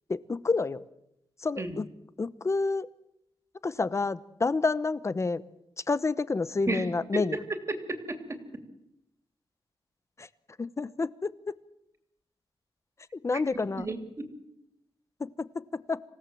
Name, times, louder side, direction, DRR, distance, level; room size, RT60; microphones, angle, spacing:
voice 1, 0.1-0.8 1.4-1.9 2.2-2.9 3.6-5.4 5.9-7.4 10.2-10.3 10.6-11.3 13.1-13.9 15.2-15.6 15.9-16.0, left 3 dB, 30° left, 16 dB, 0.9 m, -29 dB
voice 2, 6.7-7.4 7.7-8.4 13.5-14.3, right 2 dB, 30° right, 7 dB, 3.1 m, -33 dB
27.0 x 17.0 x 7.7 m, 0.84 s
wide cardioid pair, 105°, 9 cm